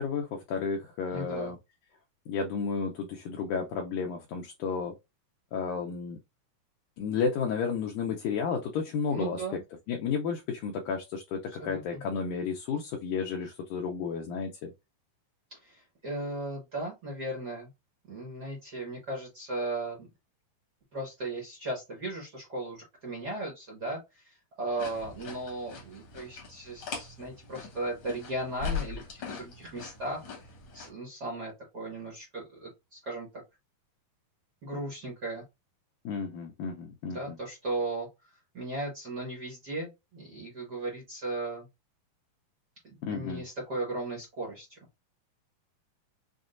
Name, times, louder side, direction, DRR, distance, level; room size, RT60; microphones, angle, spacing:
voice 1, 0.0-1.6 2.3-4.9 5.5-6.2 7.0-9.4 9.9-14.7 36.1-37.4 43.0-43.4, left 6 dB, 80° left, 1.9 m, -32 dB
voice 2, 1.1-1.5 9.1-9.6 11.5-12.0 15.6-17.7 18.1-20.1 20.9-30.3 30.7-33.3 34.6-35.4 37.1-41.7 42.8-44.8, right 2 dB, 80° right, 0.9 m, -37 dB
sound 1, 24.8-30.9, left 6 dB, 60° left, 1.4 m, -40 dB
6.1 x 2.2 x 2.5 m
omnidirectional pair, 3.9 m